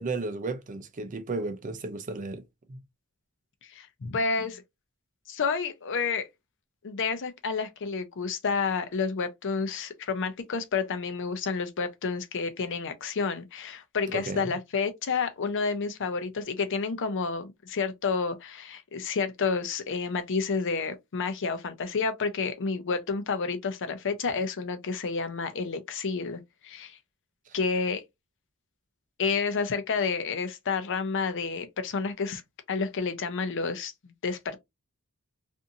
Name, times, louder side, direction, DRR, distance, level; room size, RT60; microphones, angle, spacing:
voice 1, 0.0-2.4 2.7-2.8 14.1-14.5 27.5-27.6, right 3 dB, 35° right, 0.5 m, -34 dB
voice 2, 3.6-4.6 5.3-6.3 6.8-27.0 27.5-28.0 29.2-32.4 32.7-34.6, left 5 dB, 60° left, 0.6 m, -30 dB
2.6 x 2.5 x 2.6 m
head